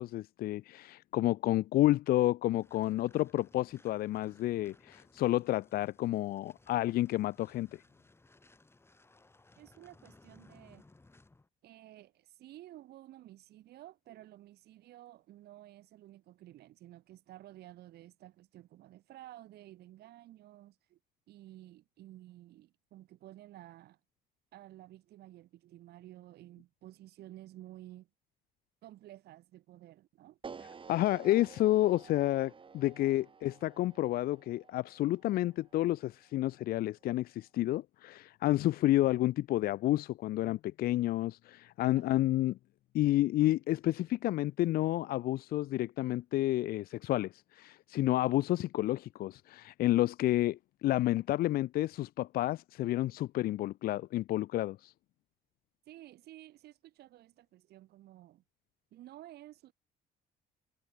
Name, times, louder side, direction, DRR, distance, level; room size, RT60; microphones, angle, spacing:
voice 1, 0.0-7.7 30.9-42.5 42.9-54.9, left 15 dB, 60° left, 0.5 m, -30 dB
sound 1, 2.5-11.5, left 2 dB, 15° left, 6.0 m, -62 dB
voice 2, 9.6-10.9 11.6-21.0 21.3-24.0 24.5-28.1 28.8-30.4 41.9-42.2 55.8-58.4 58.9-59.7, right 14 dB, 70° right, 3.6 m, -53 dB
sound 2, 30.4-36.6, right 5 dB, 30° right, 3.2 m, -52 dB
cardioid pair, 110°, 17 cm